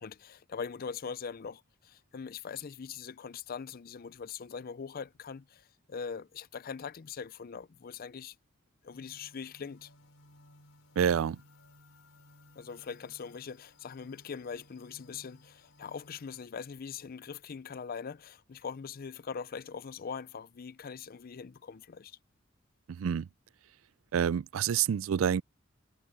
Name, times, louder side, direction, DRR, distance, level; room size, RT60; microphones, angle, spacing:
voice 1, 0.0-8.3 8.8-9.9 12.6-22.2, left 6 dB, 45° left, 0.5 m, -42 dB
sound 1, 8.9-16.5, left 1 dB, 75° left, 5.2 m, -59 dB
voice 2, 11.0-11.4 22.9-23.3 24.1-25.4, right 8 dB, 85° right, 0.4 m, -28 dB
head